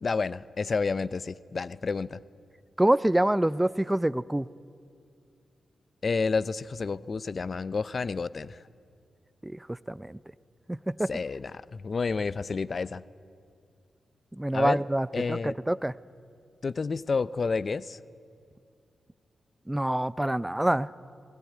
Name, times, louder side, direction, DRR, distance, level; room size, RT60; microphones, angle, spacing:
voice 1, 0.0-2.2 6.0-8.6 11.1-13.0 14.5-14.8 15.1-15.5 16.6-18.0, left 4 dB, 55° left, 18 dB, 0.5 m, -30 dB
voice 2, 2.8-4.5 9.4-10.2 10.7-11.1 14.4-15.9 19.7-20.9, right 1 dB, 15° right, 18 dB, 0.5 m, -26 dB
19.0 x 18.5 x 9.5 m, 2.3 s
supercardioid pair, 40°, 0 cm